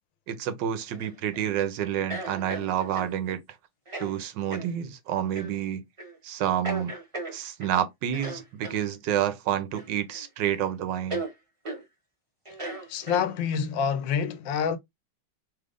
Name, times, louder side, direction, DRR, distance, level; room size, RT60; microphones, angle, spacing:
voice 1, 0.3-3.4 4.0-5.8 6.2-6.9 7.3-11.2, right 10 dB, 80° right, 1.3 m, -29 dB
sound 1, 0.9-1.5 2.1-3.2 3.9-4.1 4.5-4.7 5.3-5.5 6.0-6.2 6.6-7.8 8.1-8.8 9.7-10.3 10.5-10.6 11.1-11.3 11.7-11.8 12.5-13.6, right 2 dB, 20° right, 1.0 m, -36 dB
voice 2, 12.9-14.8, left 7 dB, 90° left, 1.4 m, -27 dB
3.4 x 2.4 x 3.4 m
omnidirectional pair, 2.0 m